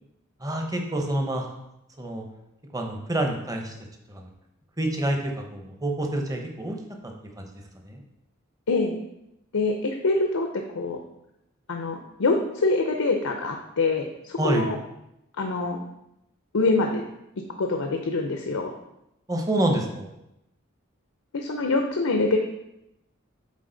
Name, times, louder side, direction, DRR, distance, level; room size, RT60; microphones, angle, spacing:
voice 1, 0.4-1.5 2.0-2.2 2.7-3.7 4.1-4.3 4.8-6.8 7.0-7.5 7.8-8.0 14.4-14.7 19.3-20.2, right 1 dB, 15° right, 2 dB, 0.9 m, -27 dB
voice 2, 8.7-9.0 9.5-11.0 11.7-14.8 15.4-15.8 16.5-17.0 17.6-18.8 21.3-22.4, left 3 dB, 85° left, 3 dB, 0.6 m, -25 dB
8.4 x 4.0 x 3.9 m, 0.86 s
head